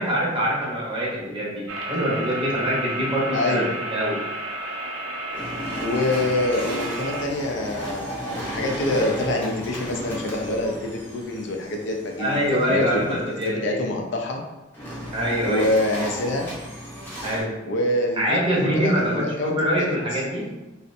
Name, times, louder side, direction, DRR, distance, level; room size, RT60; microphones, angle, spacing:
voice 1, 0.0-4.2 12.2-13.8 15.1-15.7 17.2-17.5 18.2-20.4, equal, 30° right, -5 dB, 0.7 m, -24 dB
sound 1, 1.7-7.3, right 1 dB, 85° right, 0.4 m, -32 dB
voice 2, 3.3-3.7 5.8-13.2 13.5-14.4 15.4-16.5 17.6-20.2, left 1 dB, 65° left, 1 dB, 0.4 m, -26 dB
sound 2, 5.3-13.4 14.7-17.4, equal, 10° left, 0.6 m, -35 dB
2.5 x 2.0 x 2.5 m, 1.0 s
head